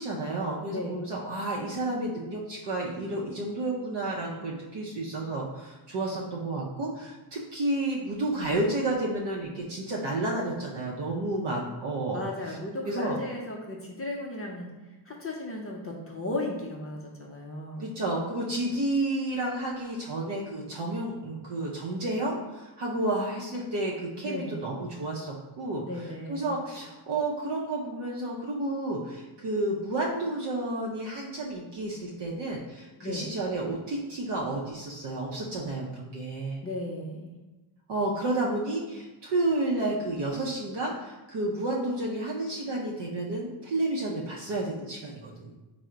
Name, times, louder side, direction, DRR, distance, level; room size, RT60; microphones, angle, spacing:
voice 1, 0.0-12.2 12.5-12.6 12.8-13.2 17.8-25.8 26.3-36.6 37.9-45.5, right 2 dB, 60° right, -3 dB, 0.6 m, -31 dB
voice 2, 12.1-17.9 24.2-24.6 25.8-26.5 33.0-33.3 36.6-37.3, left 1 dB, 30° left, -1 dB, 0.3 m, -36 dB
3.7 x 2.0 x 4.4 m, 1.1 s
wide cardioid pair, 160°, 49 cm